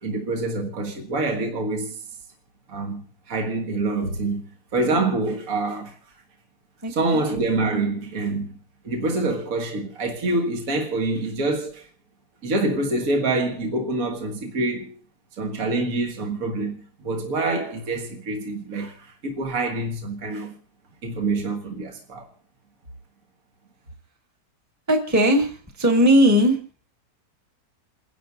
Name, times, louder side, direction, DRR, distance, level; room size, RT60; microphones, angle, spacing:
voice 1, 0.0-2.0 2.7-6.0 6.9-8.6 8.8-11.9 12.4-15.0 15.4-20.5 21.0-22.3, right 2 dB, 55° right, 1.9 m, -26 dB
voice 2, 24.9-25.5 25.8-26.5, equal, 10° right, 1.4 m, -17 dB
29.0 x 11.0 x 2.6 m
omnidirectional pair, 1.9 m